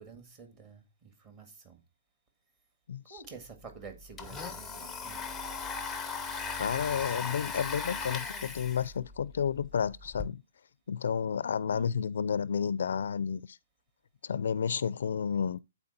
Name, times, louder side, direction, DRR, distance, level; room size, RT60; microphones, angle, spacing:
voice 1, 0.0-1.8 3.1-5.2 11.7-11.9, right 5 dB, 25° right, 1.9 m, -49 dB
voice 2, 2.9-3.2 6.6-10.4 10.9-13.6 14.2-15.6, left 7 dB, 75° left, 0.4 m, -31 dB
Domestic sounds home sounds, 3.2-3.3 3.6-10.2, left 5 dB, 5° left, 0.7 m, -38 dB
8.9 x 4.3 x 4.1 m
hypercardioid pair, 165°, 0 cm